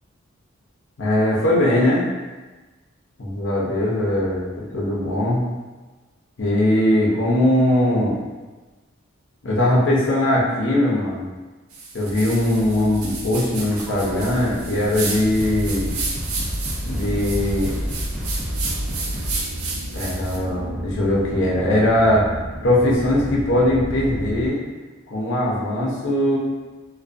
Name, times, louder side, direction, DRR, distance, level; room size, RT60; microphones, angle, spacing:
voice 1, 1.0-2.0 3.2-5.4 6.4-8.2 9.4-11.3 11.9-15.9 16.8-17.8 19.9-22.3 22.6-24.6 25.1-26.4, left 1 dB, 60° left, -5 dB, 0.6 m, -20 dB
sound 1, 11.7-20.4, right 3 dB, 90° right, 0.4 m, -32 dB
sound 2, 12.1-24.5, equal, 55° right, 0.9 m, -34 dB
sound 3, 13.6-14.3 15.0-15.1 15.4-19.6, equal, 5° right, 0.3 m, -29 dB
2.5 x 2.2 x 2.4 m, 1.2 s
head